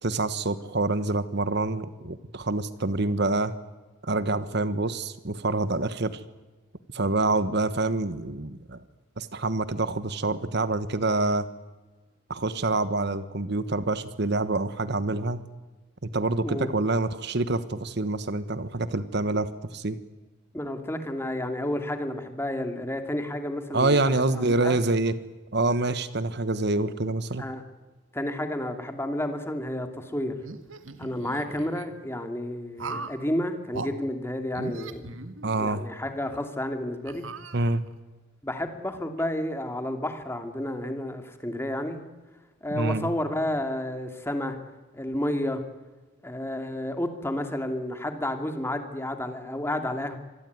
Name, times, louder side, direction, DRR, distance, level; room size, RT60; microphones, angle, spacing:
voice 1, 0.0-3.5 4.0-6.2 6.9-8.8 9.2-11.4 12.3-15.4 16.0-20.0 23.7-25.1 25.5-27.4 35.4-35.8 37.5-37.8 42.7-43.1, right 2 dB, 55° right, 13 dB, 1.3 m, -26 dB
voice 2, 20.5-24.0 24.5-24.8 27.4-27.6 28.1-30.3 31.0-35.1 35.6-37.2 38.4-42.0 42.6-44.6 44.9-45.6 46.2-50.2, left 1 dB, 10° left, 6 dB, 2.6 m, -31 dB
sound 1, 30.4-31.9 32.8-33.2 33.7-33.9 34.5-35.8 36.3-36.4 37.1-38.0, right 3 dB, 80° right, 1.8 m, -39 dB
26.0 x 20.0 x 9.5 m, 1.2 s
head